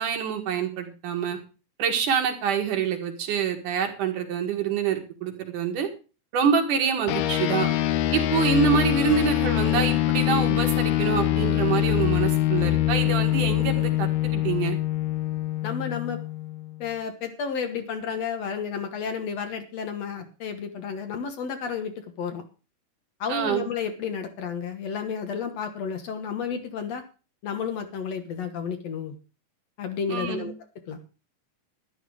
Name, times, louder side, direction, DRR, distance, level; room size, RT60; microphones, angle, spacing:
voice 1, 0.0-1.4 1.8-5.9 6.3-7.7 8.1-14.8 23.3-23.6 30.1-30.5, right 7 dB, 75° right, 4 dB, 3.4 m, -26 dB
sound 1, 7.1-16.8, left 14 dB, 85° left, 2.5 m, -24 dB
Acoustic guitar / Strum, 9.1-12.5, left 2 dB, 40° left, 0.5 m, -40 dB
voice 2, 15.6-16.2 16.8-22.4 23.2-27.0 27.4-29.2 29.8-30.5 30.9-31.0, left 6 dB, 60° left, 7 dB, 2.3 m, -31 dB
11.5 x 11.0 x 4.9 m, 0.34 s
omnidirectional pair, 3.7 m